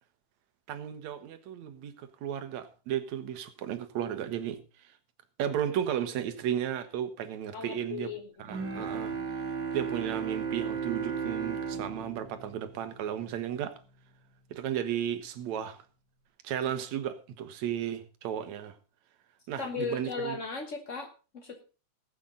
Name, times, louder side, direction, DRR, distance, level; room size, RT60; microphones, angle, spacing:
voice 1, 0.7-4.6 5.4-8.1 8.4-9.2 9.5-13.7 14.5-15.8 16.4-18.8 19.5-20.4, right 10 dB, 70° right, 2.3 m, -34 dB
voice 2, 7.5-8.6 19.6-21.6, left 4 dB, 85° left, 0.6 m, -37 dB
Bowed string instrument, 8.5-13.6, right 6 dB, 45° right, 2.1 m, -35 dB
19.0 x 7.6 x 3.8 m
omnidirectional pair, 3.6 m